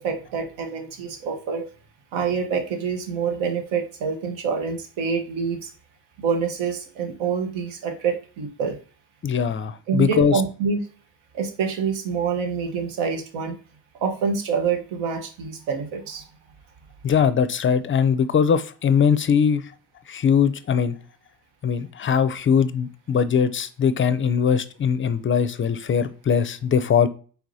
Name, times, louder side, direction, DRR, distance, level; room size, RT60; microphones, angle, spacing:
voice 1, 0.0-1.6 2.1-5.7 6.2-8.8 9.9-10.8 11.3-13.6 14.0-16.3, right 6 dB, 80° right, 1.2 m, -26 dB
voice 2, 9.2-10.4 17.0-19.7 20.1-21.0 21.6-27.1, left 7 dB, 25° left, 0.4 m, -21 dB
4.6 x 3.3 x 2.7 m
supercardioid pair, 70°, 48 cm